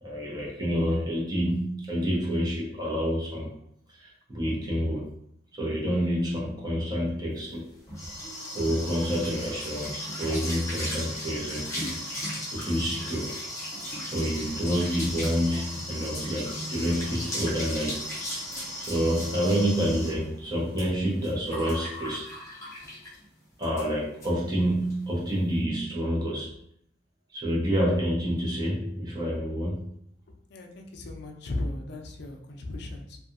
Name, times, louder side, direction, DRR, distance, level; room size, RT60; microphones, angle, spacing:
voice 1, 0.0-3.5 3.9-5.1 5.5-7.7 8.5-12.0 12.5-13.4 14.0-18.0 18.8-22.3 23.6-26.5 27.3-29.9, equal, 20° right, -4 dB, 0.7 m, -28 dB
sound 1, 7.5-23.2 23.6-23.9 24.2-24.3 24.6-25.0, equal, 15° left, 0.7 m, -36 dB
voice 2, 30.3-33.2, left 2 dB, 60° left, 3 dB, 0.4 m, -36 dB
2.7 x 2.3 x 2.5 m, 0.72 s
head